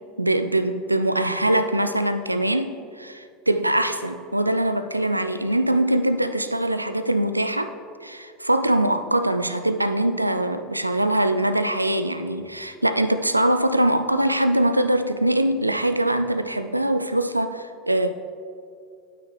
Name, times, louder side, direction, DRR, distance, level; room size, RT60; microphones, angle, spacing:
voice 1, 0.2-7.7 8.0-18.1, right 1 dB, 90° right, 9 dB, 0.3 m, -22 dB
9.0 x 8.9 x 3.2 m, 2.4 s
figure-of-eight pair, 75°, 0 cm